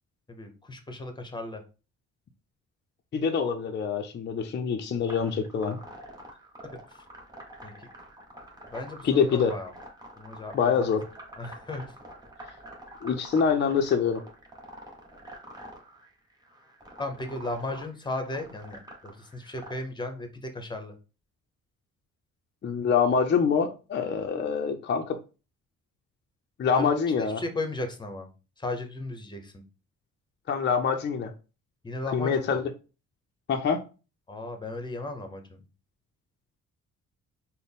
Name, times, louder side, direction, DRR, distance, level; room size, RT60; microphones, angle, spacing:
voice 1, 0.3-1.6 7.6-7.9 8.7-9.7 10.2-10.8 11.4-11.8 17.0-20.9 26.7-28.3 28.6-29.6 31.8-32.6 34.3-35.6, left 2 dB, 15° left, 6 dB, 0.8 m, -35 dB
voice 2, 3.1-5.8 9.0-9.6 10.5-11.0 13.0-14.2 22.6-25.2 26.6-27.4 30.5-31.3 32.1-32.7 33.5-33.8, left 6 dB, 35° left, 4 dB, 0.5 m, -25 dB
sound 1, 5.1-19.7, right 1 dB, 15° right, 1.1 m, -46 dB
4.0 x 2.1 x 3.5 m, 0.33 s
cardioid pair, 90°, 30 cm